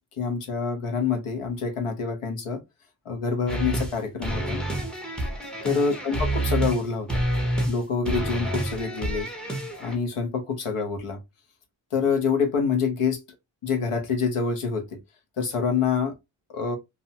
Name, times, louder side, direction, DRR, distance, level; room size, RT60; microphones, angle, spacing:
voice 1, 0.2-2.6 3.0-4.6 5.6-7.2 7.7-9.3 9.8-11.2 11.9-13.2 13.6-14.9 15.4-16.1 16.5-16.8, left 5 dB, 90° left, 1.0 m, -26 dB
sound 1, 3.5-3.9 4.2-6.8 7.1-7.8 8.0-10.0, right 1 dB, ahead, 0.6 m, -28 dB
2.7 x 2.2 x 2.6 m
wide cardioid pair, 175°, 49 cm